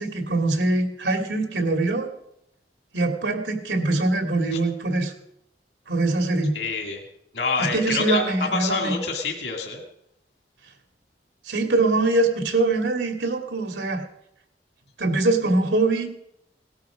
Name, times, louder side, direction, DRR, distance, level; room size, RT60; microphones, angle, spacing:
voice 1, 0.0-2.1 2.9-5.1 5.9-6.6 7.6-8.9 11.5-14.1 15.0-16.1, right 2 dB, 85° right, 4 dB, 2.5 m, -23 dB
voice 2, 6.5-7.0 7.3-8.2 8.5-9.8, left 4 dB, 70° left, 2 dB, 2.2 m, -26 dB
18.5 x 12.0 x 5.1 m, 0.79 s
head